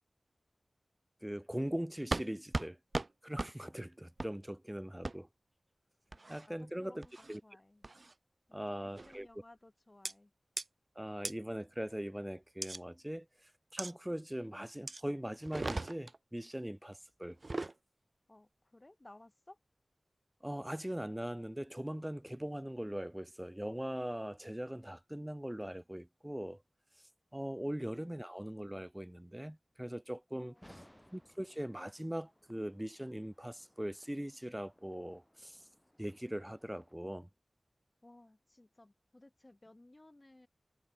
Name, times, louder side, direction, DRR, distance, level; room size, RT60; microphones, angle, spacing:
voice 1, 1.2-2.8 3.2-5.3 6.3-7.4 8.5-9.3 11.0-13.3 13.7-17.4 20.4-26.6 27.3-30.8 31.1-35.6 36.0-37.3, equal, 10° right, 1.9 m, -41 dB
sound 1, 2.1-2.3 2.5-2.7 2.9-3.1 3.4-3.5 4.2-4.3 5.0-5.1 6.1-6.5 7.0-7.4 7.8-8.1 9.0-9.2 10.0-10.1 10.6-10.7 11.2-11.3 12.6-12.8 13.8-13.9 14.9-15.0 15.4-16.2 17.3-17.7, right 2 dB, 45° right, 1.1 m, -38 dB
voice 2, 6.1-7.9 8.5-10.3 18.3-19.6 30.3-31.0 38.0-40.5, left 1 dB, 30° left, 3.7 m, -60 dB
sound 2, 30.5-36.9, equal, 5° left, 4.6 m, -64 dB
wide cardioid pair, 55°, 0 cm